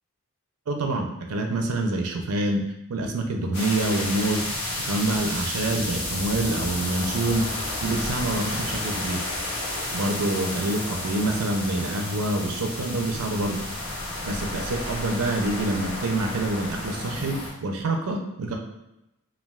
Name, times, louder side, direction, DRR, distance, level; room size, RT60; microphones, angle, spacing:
voice 1, 0.7-2.6 2.9-4.5 4.8-7.4 7.8-9.2 9.9-13.6 14.2-18.5, right 2 dB, 85° right, 2 dB, 0.5 m, -26 dB
sound 1, 3.5-17.5, left 1 dB, 75° left, 0.9 m, -31 dB
3.3 x 2.3 x 2.3 m, 0.90 s
head